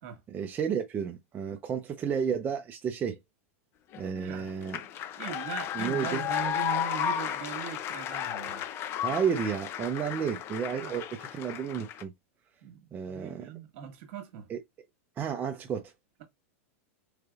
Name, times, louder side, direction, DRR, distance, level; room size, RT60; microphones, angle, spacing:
voice 1, 0.3-3.2 4.0-4.8 5.7-6.3 9.0-12.1 12.9-13.5 14.5-14.6 15.2-15.8, right 7 dB, 25° right, 0.6 m, -32 dB
sound 1, 3.9-12.0, left 10 dB, 35° left, 0.5 m, -34 dB
voice 2, 4.1-4.5 5.2-8.7 10.0-10.1 10.8-11.0 12.6-14.5, right 10 dB, 55° right, 1.5 m, -40 dB
3.8 x 3.3 x 2.4 m
supercardioid pair, 130°, 7 cm